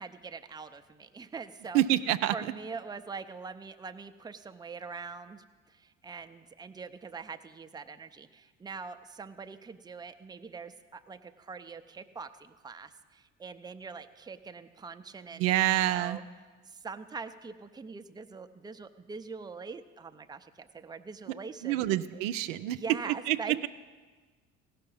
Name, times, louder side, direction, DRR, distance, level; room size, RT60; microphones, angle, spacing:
voice 1, 0.0-1.8 2.3-15.5 15.8-16.2 16.7-21.9 22.6-23.7, right 5 dB, 10° right, 8 dB, 0.5 m, -43 dB
voice 2, 1.7-2.3 15.3-16.2 21.6-22.8 23.1-23.7, right 14 dB, 70° right, 11 dB, 0.5 m, -27 dB
17.0 x 5.9 x 5.4 m, 1.4 s
hypercardioid pair, 60°, 38 cm